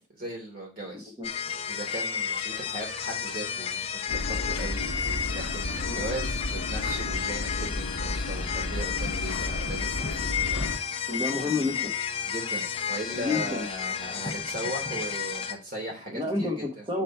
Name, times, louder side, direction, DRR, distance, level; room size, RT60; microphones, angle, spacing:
voice 1, 0.1-1.1 1.7-4.9 5.3-10.8 12.2-16.8, right 1 dB, 45° right, 0 dB, 2.8 m, -38 dB
sound 1, 1.2-15.5, left 7 dB, 25° left, 0.5 m, -32 dB
sound 2, 4.1-10.8, left 2 dB, 85° left, 0.7 m, -33 dB
voice 2, 11.1-11.9 13.1-13.7 16.1-17.0, left 3 dB, 25° right, -3 dB, 1.1 m, -29 dB
5.0 x 4.5 x 5.5 m, 0.32 s
head